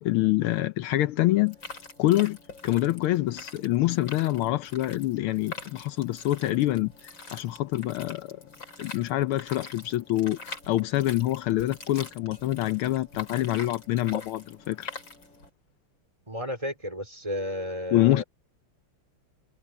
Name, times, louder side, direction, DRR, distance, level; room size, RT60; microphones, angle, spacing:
voice 1, 0.0-1.6 2.0-2.4 2.6-8.4 8.8-14.9 17.9-18.2, left 15 dB, 80° left, 1.5 m, -26 dB
sound 1, 1.5-15.5, left 4 dB, 55° left, 6.1 m, -44 dB
voice 2, 16.3-18.2, left 1 dB, 15° right, 4.5 m, -33 dB
omnidirectional pair, 2.4 m